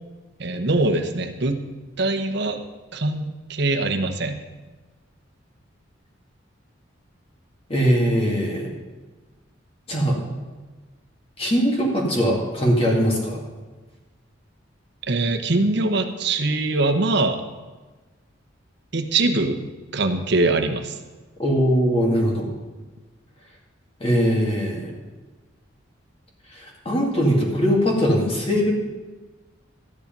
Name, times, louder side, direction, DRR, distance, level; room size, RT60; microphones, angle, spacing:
voice 1, 0.4-1.6 2.0-2.6 2.9-4.4 15.1-17.4 18.9-19.6 19.9-20.9, right 2 dB, 60° right, 7 dB, 1.0 m, -22 dB
voice 2, 7.7-8.7 9.9-10.2 11.4-13.4 21.4-22.5 24.0-24.9 26.5-28.7, equal, 30° left, -1 dB, 2.4 m, -21 dB
13.5 x 10.0 x 5.4 m, 1.3 s
head